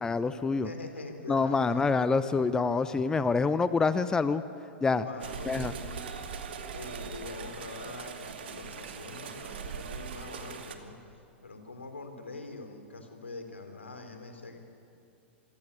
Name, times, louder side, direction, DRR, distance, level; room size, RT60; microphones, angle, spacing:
voice 1, 0.0-0.7 1.3-4.4 4.8-5.1 5.5-5.7, left 4 dB, 10° left, 13 dB, 0.7 m, -26 dB
voice 2, 0.5-2.0 5.0-6.1 6.7-11.0 11.4-14.6, left 3 dB, 80° left, 6 dB, 3.4 m, -44 dB
sound 1, 5.2-10.7, right 6 dB, 60° right, 2.3 m, -40 dB
27.0 x 17.0 x 9.9 m, 2.5 s
figure-of-eight pair, 100°, 7 cm